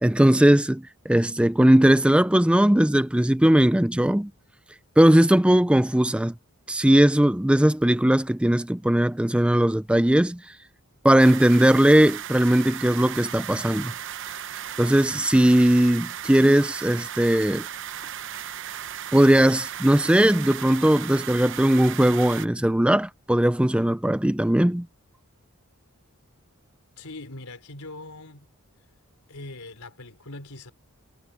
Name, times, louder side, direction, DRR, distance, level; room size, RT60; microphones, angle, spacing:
voice 1, 0.0-4.3 5.0-6.3 6.7-10.4 11.0-13.9 14.8-17.7 19.1-24.9, right 1 dB, 5° right, 0.4 m, -19 dB
sound 1, 11.2-22.5, right 10 dB, 60° right, 0.8 m, -36 dB
voice 2, 27.0-28.5 29.3-30.7, left 2 dB, 80° left, 3.6 m, -41 dB
head